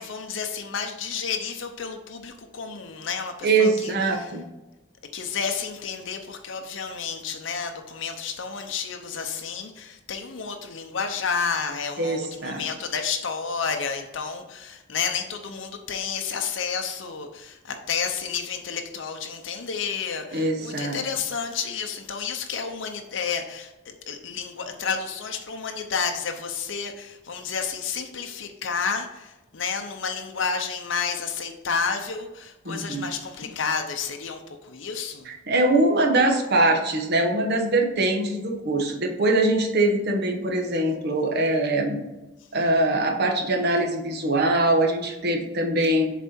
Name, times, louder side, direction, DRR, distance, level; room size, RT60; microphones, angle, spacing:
voice 1, 0.0-4.3 5.1-35.3, left 6 dB, 70° left, 5 dB, 0.7 m, -31 dB
voice 2, 3.4-4.4 12.0-12.6 20.3-21.0 32.6-33.0 35.3-42.0 42.5-46.1, right 2 dB, 55° right, 2 dB, 1.1 m, -22 dB
7.0 x 4.2 x 4.3 m, 1.0 s
head